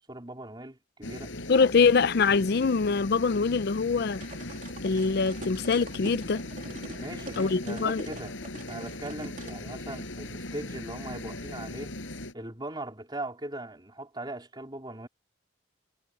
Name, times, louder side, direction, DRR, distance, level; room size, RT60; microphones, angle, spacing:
voice 1, 0.1-1.4 7.0-8.3 8.7-11.9 12.3-15.1, right 1 dB, 25° right, 3.8 m, -39 dB
sound 1, 1.0-12.3, left 1 dB, 80° left, 5.3 m, -39 dB
voice 2, 1.5-4.2 4.8-6.4 7.4-8.1, left 5 dB, 55° left, 0.5 m, -24 dB
sound 2, 4.1-9.6, right 2 dB, 40° right, 2.8 m, -44 dB
head